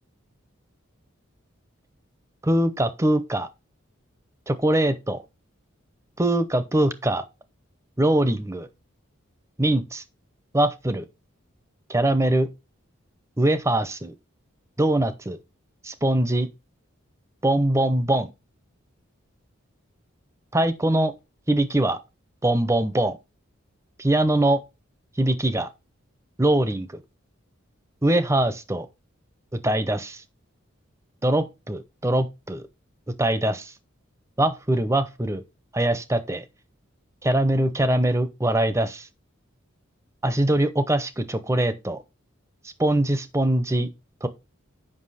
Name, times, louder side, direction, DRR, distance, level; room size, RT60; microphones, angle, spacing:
voice 1, 2.4-3.5 4.5-5.2 6.2-7.2 8.0-8.7 9.6-10.0 10.5-11.0 11.9-12.5 13.4-14.1 14.8-15.4 15.8-16.5 17.4-18.3 20.5-21.1 21.5-22.0 22.4-23.2 24.0-24.6 25.2-25.7 26.4-27.0 28.0-28.9 29.5-30.2 31.2-32.6 33.2-33.7 34.4-35.4 35.7-36.4 37.2-39.1 40.2-42.0 42.8-43.9 44.2-44.3, right 1 dB, 15° right, 0.6 m, -22 dB
7.6 x 5.6 x 4.1 m
head